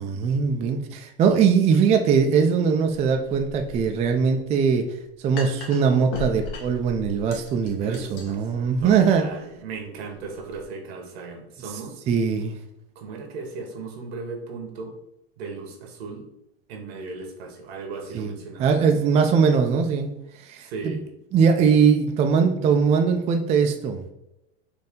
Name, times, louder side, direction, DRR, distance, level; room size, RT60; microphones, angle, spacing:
voice 1, 0.0-4.8 5.2-9.3 12.1-12.5 18.1-20.1 20.5-20.9 21.3-24.0, right 6 dB, 20° right, 5 dB, 0.3 m, -21 dB
Putting a cup on a table and stirring in it, 2.9-10.6, left 4 dB, 65° left, 1.2 m, -40 dB
voice 2, 7.8-8.4 8.8-12.0 12.9-14.9 15.4-16.3 16.7-18.8 20.6-21.0, right 4 dB, 80° right, 4 dB, 1.2 m, -37 dB
4.2 x 2.7 x 3.6 m, 0.86 s
supercardioid pair, 130°, 31 cm